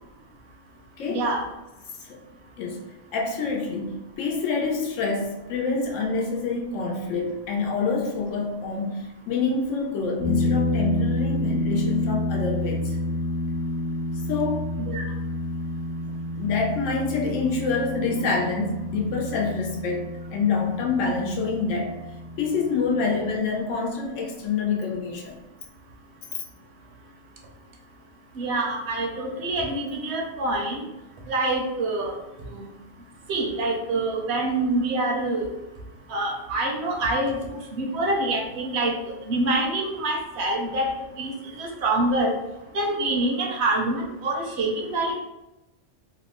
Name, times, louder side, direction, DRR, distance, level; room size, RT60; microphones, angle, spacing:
voice 1, 1.1-1.4 14.9-15.1 28.3-30.8 31.3-32.2 32.4-32.7 33.3-35.5 36.1-39.0 39.3-42.4 42.7-45.2, right 2 dB, 70° right, 0 dB, 0.8 m, -26 dB
voice 2, 3.1-13.0 14.3-14.6 16.1-21.9 22.4-25.4, left 4 dB, 85° left, 0 dB, 1.0 m, -27 dB
sound 1, 10.2-23.3, left 2 dB, 55° left, 0.6 m, -29 dB
2.8 x 2.1 x 2.9 m, 0.99 s
omnidirectional pair, 1.3 m